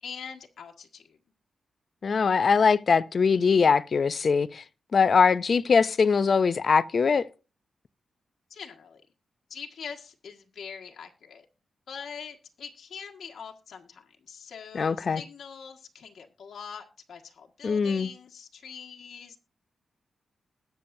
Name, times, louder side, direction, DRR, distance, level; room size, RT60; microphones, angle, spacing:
voice 1, 0.0-1.2 8.5-9.0 9.5-11.4 11.9-19.4, left 6 dB, 65° left, 1.5 m, -43 dB
voice 2, 2.0-4.6 4.9-7.2 14.7-15.2 17.6-18.1, left 5 dB, 45° left, 0.4 m, -22 dB
20.5 x 7.0 x 2.6 m
wide cardioid pair, 150°, 0 cm